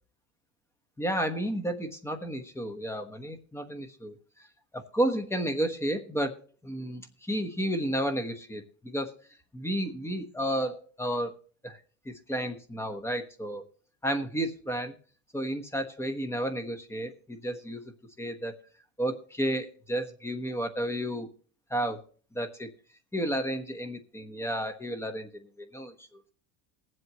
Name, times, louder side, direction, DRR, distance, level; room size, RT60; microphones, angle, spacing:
voice 1, 1.0-4.5 4.7-6.3 6.6-9.1 9.5-11.3 11.6-11.8 12.0-13.6 14.0-15.0 15.3-17.8 18.2-18.6 19.0-21.3 21.7-22.0 22.3-22.7 23.1-26.3, right 1 dB, 5° left, 7 dB, 1.1 m, -32 dB
20.0 x 7.8 x 3.0 m, 0.43 s
supercardioid pair, 120°, 41 cm